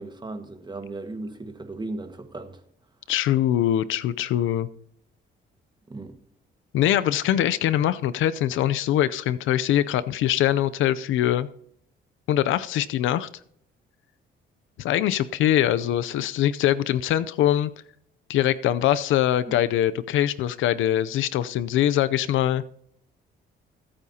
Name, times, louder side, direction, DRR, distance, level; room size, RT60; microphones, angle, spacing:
voice 1, 0.0-2.6 5.9-6.2 19.5-19.6, right 2 dB, 20° right, 1.6 m, -36 dB
voice 2, 3.1-4.7 6.7-11.5 12.3-13.3 14.8-17.7 18.3-22.6, left 12 dB, 85° left, 0.6 m, -23 dB
23.0 x 8.7 x 2.8 m
cardioid pair, 90°, 20 cm